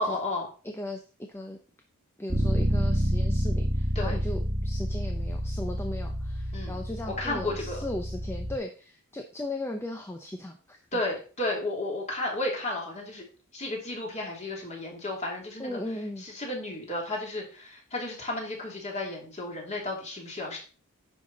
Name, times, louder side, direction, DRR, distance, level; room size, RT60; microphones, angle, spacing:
voice 1, 0.0-0.5 3.9-4.2 6.5-6.8 7.1-7.8 10.9-13.2 13.5-15.8 16.2-20.6, left 2 dB, 30° left, -1 dB, 2.8 m, -33 dB
voice 2, 0.6-1.6 2.2-11.0 15.6-16.2, left 1 dB, 10° left, 3 dB, 0.7 m, -37 dB
Bass guitar, 2.3-8.5, equal, 30° right, 1.4 m, -29 dB
10.0 x 5.7 x 4.0 m, 0.36 s
head